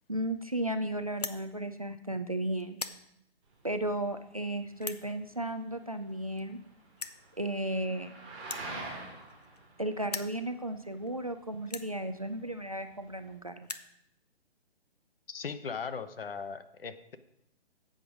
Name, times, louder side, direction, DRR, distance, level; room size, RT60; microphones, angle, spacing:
voice 1, 0.1-2.8 3.6-6.6 7.4-8.1 9.8-13.7, right 1 dB, 35° right, 8 dB, 0.4 m, -34 dB
sound 1, 1.1-1.4 2.1-2.3 2.6-3.0 3.8-3.9 4.8-5.0 6.1-6.2 6.4-6.5 7.0-7.2 8.4-9.7 10.0-10.4 11.1-11.2 11.7-11.9 12.8-12.9 13.1-13.2 13.5-13.9, left 4 dB, 40° left, 0.5 m, -40 dB
sound 2, 3.4-13.4, right 2 dB, 5° right, 0.8 m, -48 dB
voice 2, 15.3-17.2, left 5 dB, 60° left, 11 dB, 0.9 m, -38 dB
11.0 x 7.8 x 5.0 m, 0.79 s
hypercardioid pair, 175°, 33 cm